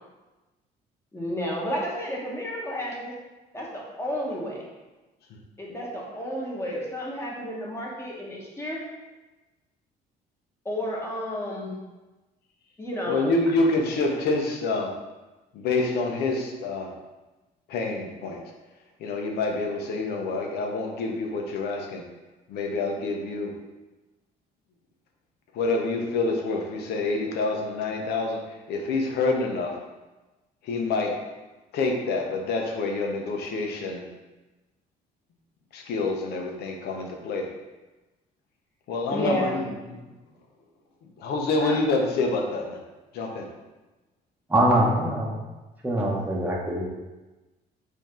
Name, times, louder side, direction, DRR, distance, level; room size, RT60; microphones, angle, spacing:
voice 1, 1.1-3.1 3.5-4.6 5.6-8.8 10.6-11.7 12.8-13.3 39.1-39.6 41.6-41.8, left 1 dB, 15° left, -4 dB, 1.3 m, -31 dB
voice 2, 13.0-14.9 15.5-16.9 17.7-18.4 19.0-22.0 22.5-23.5 25.5-28.4 28.7-29.7 30.6-31.1 31.7-34.0 35.7-37.5 38.9-39.6 39.9-40.0 41.2-42.8 43.1-43.5, left 3 dB, 75° left, 1 dB, 0.9 m, -27 dB
voice 3, 44.5-45.3 45.8-46.9, right 1 dB, 10° right, -4 dB, 0.9 m, -23 dB
5.1 x 2.8 x 3.7 m, 1.1 s
cardioid pair, 110°, 17 cm